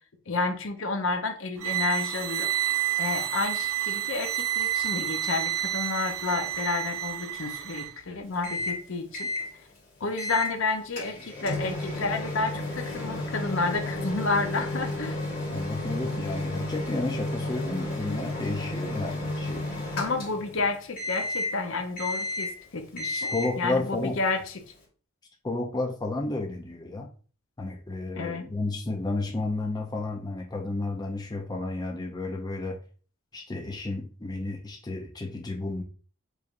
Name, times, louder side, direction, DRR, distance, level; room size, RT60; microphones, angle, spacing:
voice 1, 0.3-2.5 3.0-9.3 10.0-15.2 20.0-24.6 28.2-28.5, left 3 dB, 65° left, 0.7 m, -30 dB
sound 1, 1.6-7.9, right 12 dB, 85° right, 0.4 m, -29 dB
Microwave oven, 8.4-8.8 9.1-9.5 10.2-10.5 11.0-20.6 21.0-21.6 22.0-22.6 23.0-23.6, left 2 dB, 45° left, 1.9 m, -32 dB
voice 2, 15.5-19.6 23.1-24.2 25.4-27.1 27.6-32.8 33.3-35.8, left 2 dB, 20° left, 0.5 m, -32 dB
4.8 x 3.3 x 2.5 m
head